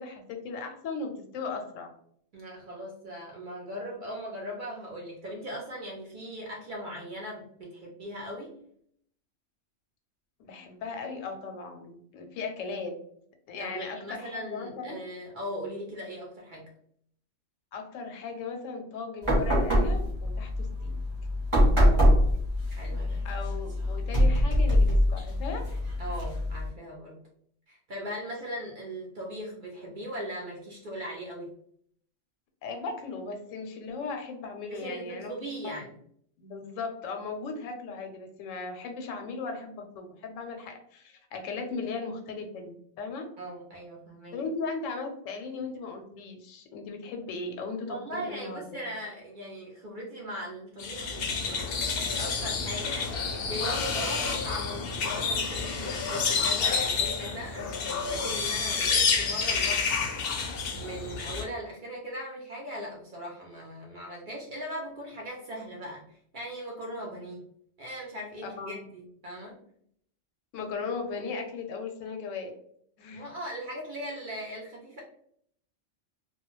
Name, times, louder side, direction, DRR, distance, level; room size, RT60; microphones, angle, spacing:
voice 1, 0.0-1.9 10.4-12.9 13.5-15.0 17.7-21.0 23.2-25.6 32.6-35.3 35.6-35.8 36.4-43.3 44.3-48.8 68.6-68.8 70.5-72.5 73.0-73.3, left 4 dB, 85° left, 4 dB, 0.9 m, -37 dB
voice 2, 2.3-8.6 13.6-16.7 21.8-22.3 22.8-23.3 26.0-27.2 27.7-31.5 34.7-35.9 43.4-44.4 47.9-60.5 60.8-67.4 67.8-69.6 73.1-75.0, equal, 55° right, -2 dB, 0.5 m, -39 dB
sound 1, 19.2-26.7, equal, 30° right, 0.8 m, -24 dB
sound 2, 50.8-61.4, left 5 dB, 65° left, 0.6 m, -29 dB
2.3 x 2.1 x 3.0 m, 0.66 s
omnidirectional pair, 1.3 m